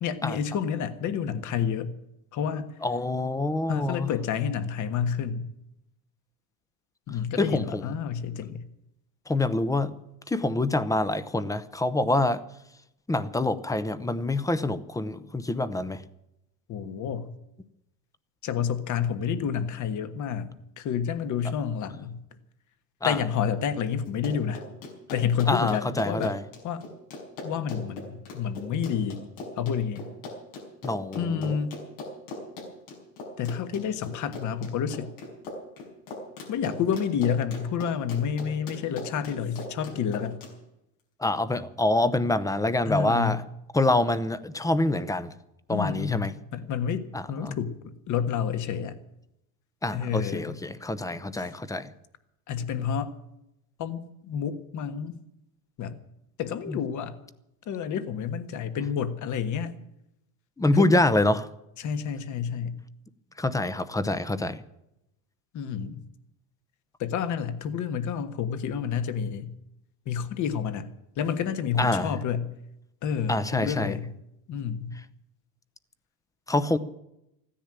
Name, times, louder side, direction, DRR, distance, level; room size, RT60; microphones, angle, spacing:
voice 1, 0.0-1.9 2.3-2.7 3.7-5.5 7.1-8.6 16.7-17.3 18.4-22.2 23.0-24.6 25.1-26.4 26.6-26.8 27.4-29.2 29.6-30.1 31.1-31.7 33.4-35.1 36.5-40.4 42.9-43.4 45.7-47.7 48.1-49.0 49.9-50.6 51.4-51.5 52.5-53.1 53.8-55.2 55.8-56.0 56.4-57.2 57.7-59.7 60.7-60.9 61.8-62.8 65.5-66.0 67.0-69.5 70.1-70.9 71.2-72.6 73.0-74.1 74.5-74.9, left 7 dB, 45° left, 1.5 m, -29 dB
voice 2, 2.8-4.1 7.4-7.9 9.3-9.9 10.3-12.4 13.1-16.0 23.0-23.2 25.5-26.4 30.8-31.6 41.2-43.4 43.7-45.3 45.7-46.3 47.1-47.6 49.8-51.9 56.7-56.8 60.6-61.5 63.4-64.6 71.8-72.1 73.3-73.9 76.5-76.8, left 2 dB, 10° left, 0.8 m, -26 dB
Run, 24.1-40.5, left 2 dB, 90° left, 5.7 m, -39 dB
15.5 x 10.0 x 8.9 m
cardioid pair, 135°, 40 cm